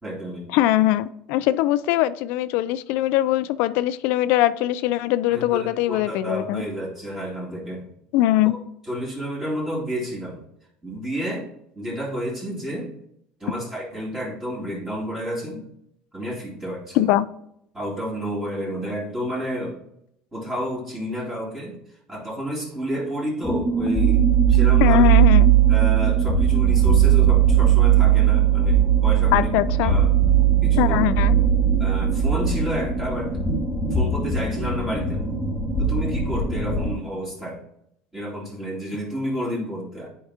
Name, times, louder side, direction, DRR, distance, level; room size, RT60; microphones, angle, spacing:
voice 1, 0.0-0.5 5.3-7.9 8.9-10.4 10.8-12.9 13.4-15.7 16.1-17.1 17.7-19.8 20.3-21.8 22.1-25.2 25.7-29.5 29.8-30.1 30.6-31.0 31.8-33.4 33.9-35.2 35.8-37.6 38.1-40.1, equal, 15° right, -6 dB, 2.5 m, -30 dB
voice 2, 0.5-6.6 8.1-8.5 16.9-17.3 24.8-25.5 29.3-29.9 30.8-31.4, left 14 dB, 70° left, 15 dB, 0.4 m, -21 dB
sound 1, 23.4-36.9, right 8 dB, 5° left, 2.1 m, -19 dB
10.0 x 4.7 x 2.8 m, 0.76 s
supercardioid pair, 115°, 3 cm